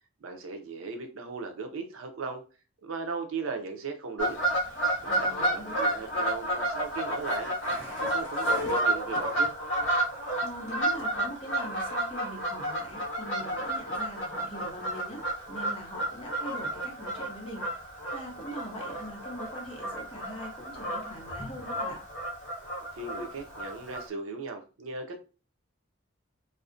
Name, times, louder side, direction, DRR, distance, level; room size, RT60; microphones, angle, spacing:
voice 1, 0.2-2.4 2.8-4.4 5.0-7.5 8.0-9.5 23.0-25.2, right 4 dB, 85° right, 5 dB, 0.5 m, -37 dB
Fowl / Bird vocalization bird call bird song, 4.2-24.1, right 1 dB, 65° left, 0.6 m, -31 dB
voice 2, 5.0-5.8 10.4-15.2 15.5-17.7 18.1-22.0, equal, 25° left, -1 dB, 0.6 m, -42 dB
2.5 x 2.0 x 2.4 m, 0.34 s
head